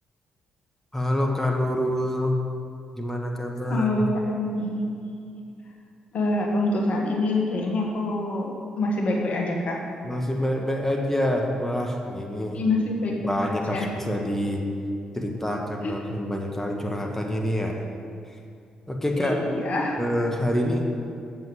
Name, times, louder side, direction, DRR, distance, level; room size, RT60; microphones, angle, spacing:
voice 1, 0.9-2.4 3.0-4.1 10.0-12.6 13.2-14.6 15.1-17.8 18.9-19.4 20.0-20.9, left 1 dB, 10° left, 1 dB, 1.3 m, -26 dB
voice 2, 3.7-5.4 6.1-9.9 12.5-13.2 13.7-13.9 15.8-15.9 19.2-20.0, left 2 dB, 55° left, 0 dB, 1.5 m, -26 dB
7.6 x 5.6 x 7.7 m, 2.5 s
hypercardioid pair, 40°, 3 cm